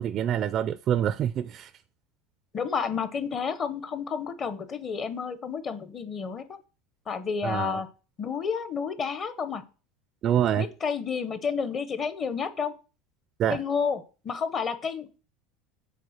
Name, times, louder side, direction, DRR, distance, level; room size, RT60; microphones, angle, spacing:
voice 1, 0.0-1.7 7.4-7.8 10.2-10.7 13.4-13.6, right 10 dB, 35° right, 0.3 m, -26 dB
voice 2, 2.5-6.6 7.1-7.9 8.2-9.6 10.6-12.7 13.5-15.2, left 6 dB, 25° left, 0.8 m, -30 dB
6.7 x 4.2 x 6.4 m
supercardioid pair, 145°, 0 cm